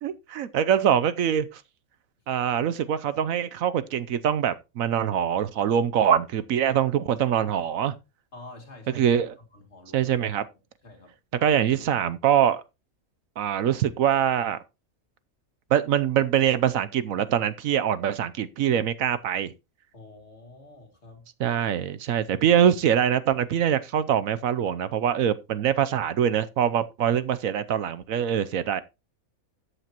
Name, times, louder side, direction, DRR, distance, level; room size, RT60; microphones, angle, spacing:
voice 1, 0.0-1.6 2.3-7.9 9.0-9.3 9.9-10.4 11.4-12.6 13.4-14.6 15.7-19.5 21.4-28.8, right 9 dB, 70° right, 1.1 m, -24 dB
voice 2, 8.3-9.2 9.5-10.1 10.5-11.2 19.9-21.3, left 2 dB, 50° left, 2.7 m, -48 dB
13.5 x 8.2 x 2.9 m
omnidirectional pair, 1.5 m